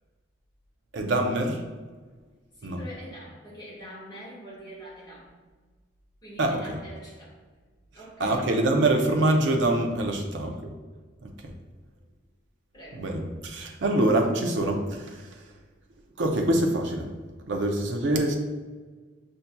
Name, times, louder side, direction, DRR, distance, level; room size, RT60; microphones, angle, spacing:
voice 1, 0.9-1.6 2.6-2.8 6.4-6.8 8.2-10.7 11.2-11.3 12.9-15.4 16.2-17.1 17.5-18.4, right 1 dB, 65° right, 2 dB, 0.5 m, -25 dB
voice 2, 2.5-5.4 6.2-7.4 7.9-8.4 10.1-10.3 12.7-13.1, equal, 20° left, -8 dB, 1.4 m, -44 dB
5.6 x 2.7 x 2.2 m, 1.4 s
head